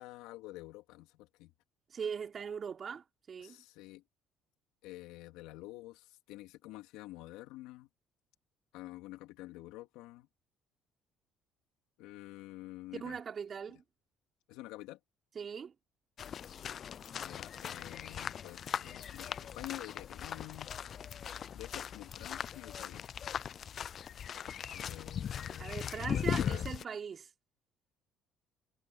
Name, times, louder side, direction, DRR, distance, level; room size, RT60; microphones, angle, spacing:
voice 1, 0.0-1.5 3.4-4.0 4.8-7.9 8.7-10.3 12.0-13.2 13.7-13.8 14.5-15.0 17.1-20.7 21.5-23.1 24.7-26.7, left 18 dB, 90° left, 2.8 m, -48 dB
voice 2, 1.9-3.6 12.9-13.8 15.4-15.7 25.6-27.3, right 6 dB, 40° right, 3.6 m, -40 dB
sound 1, 16.2-26.8, left 8 dB, 45° left, 0.4 m, -39 dB
cardioid pair, 105°, 0 cm